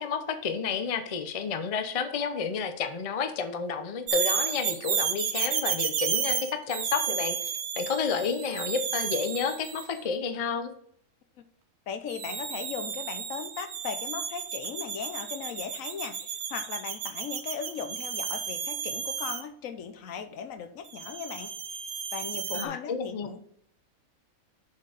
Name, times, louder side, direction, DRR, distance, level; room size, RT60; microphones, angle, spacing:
voice 1, 0.0-10.7 22.5-23.3, left 5 dB, 35° left, 8 dB, 0.5 m, -31 dB
sound 1, 4.1-9.9 12.1-19.4 20.9-22.7, right 8 dB, 65° right, 1.1 m, -32 dB
voice 2, 11.9-21.5 22.1-23.4, left 7 dB, 70° left, 10 dB, 1.1 m, -38 dB
7.1 x 4.5 x 4.9 m, 0.69 s
omnidirectional pair, 1.5 m